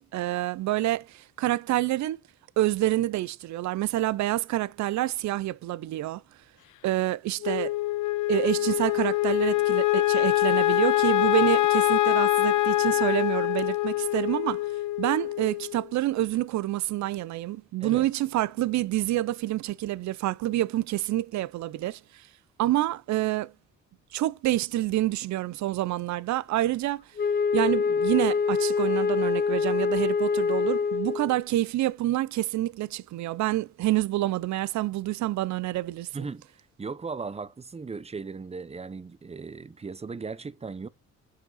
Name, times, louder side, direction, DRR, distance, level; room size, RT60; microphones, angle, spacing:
voice 1, 0.0-2.2 2.6-6.2 6.8-7.8 8.3-14.6 15.0-22.0 22.6-23.5 24.1-27.0 27.5-36.1, right 15 dB, 65° right, 0.5 m, -27 dB
Wind instrument woodwind instrument, 7.4-15.9, left 16 dB, 80° left, 0.7 m, -24 dB
Wind instrument woodwind instrument 2, 27.2-31.4, left 5 dB, 35° left, 0.6 m, -25 dB
voice 2, 36.1-36.5 36.8-40.9, right 4 dB, 20° right, 0.8 m, -37 dB
7.3 x 5.6 x 4.0 m
cardioid pair, 90°, 30 cm